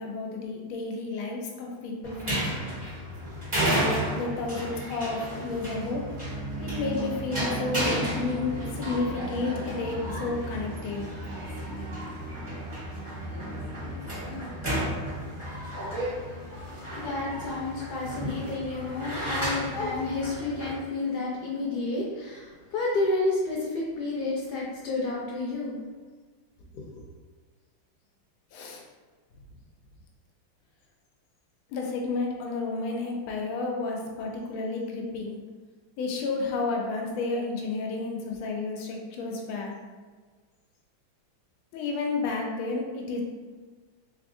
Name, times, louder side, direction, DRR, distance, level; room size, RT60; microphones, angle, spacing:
voice 1, 0.0-2.5 3.6-6.0 6.6-11.1 28.5-28.8 31.7-35.4 36.0-39.7 41.7-43.2, left 3 dB, 90° left, 0 dB, 1.5 m, -31 dB
sound 1, 2.0-20.8, equal, 25° right, 0.8 m, -33 dB
sound 2, 5.5-15.6, right 3 dB, 65° right, 0.8 m, -39 dB
voice 2, 17.0-25.8 26.7-26.9, left 2 dB, 65° left, -4 dB, 1.0 m, -30 dB
3.7 x 3.4 x 2.6 m, 1.5 s
omnidirectional pair, 2.2 m